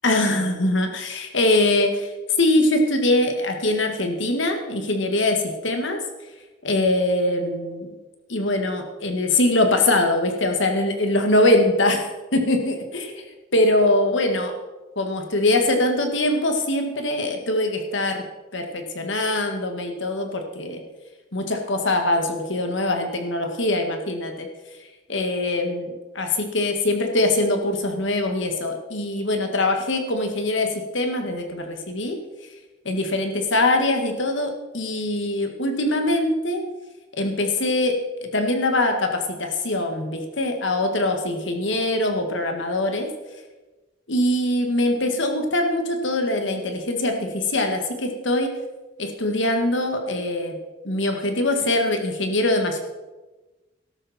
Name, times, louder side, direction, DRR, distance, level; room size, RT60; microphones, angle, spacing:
voice 1, 0.0-2.1 2.4-6.0 6.6-7.9 8.3-12.8 13.5-14.5 15.0-18.2 18.5-20.8 21.3-24.5 25.1-32.2 32.9-36.6 37.2-38.0 38.3-43.1 44.1-48.5 49.0-50.6 50.8-52.8, left 1 dB, 70° left, 4 dB, 1.9 m, -22 dB
13.5 x 12.0 x 4.4 m, 1.2 s
head